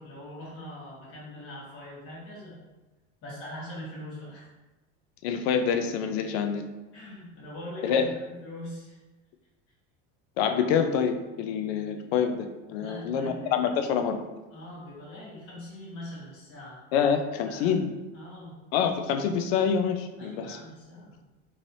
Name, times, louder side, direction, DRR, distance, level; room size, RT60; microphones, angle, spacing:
voice 1, 0.0-2.6 3.2-4.5 6.9-9.0 12.8-13.9 14.5-16.8 17.5-17.8 18.1-18.6 20.2-21.3, left 1 dB, 40° left, -7 dB, 1.3 m, -42 dB
voice 2, 5.2-6.7 7.8-8.1 10.4-14.3 16.9-17.9 18.7-20.6, left 7 dB, 75° left, 7 dB, 0.5 m, -26 dB
3.1 x 2.8 x 2.6 m, 1.1 s
cardioid pair, 175°, 31 cm